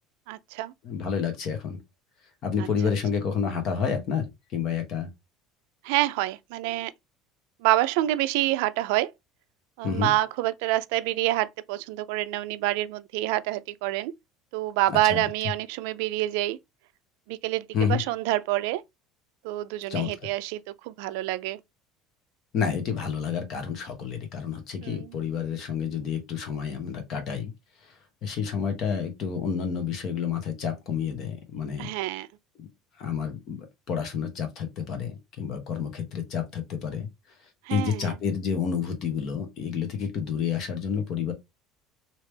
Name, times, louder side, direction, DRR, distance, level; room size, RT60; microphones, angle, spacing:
voice 1, 0.3-0.7 5.9-6.9 7.6-9.1 9.8-14.1 14.5-16.6 17.3-17.6 17.9-18.8 19.4-20.6 20.9-21.6 24.8-25.1 31.8-32.3 37.7-38.1, right 16 dB, 80° right, 0.3 m, -27 dB
voice 2, 0.8-1.8 2.4-5.1 9.8-10.1 14.9-15.2 17.7-18.0 19.9-20.1 22.5-27.5 28.2-31.9 32.6-32.7 33.0-37.1 37.7-41.3, left 7 dB, 40° left, 1.0 m, -29 dB
3.3 x 2.9 x 3.2 m
cardioid pair, 170°, 0 cm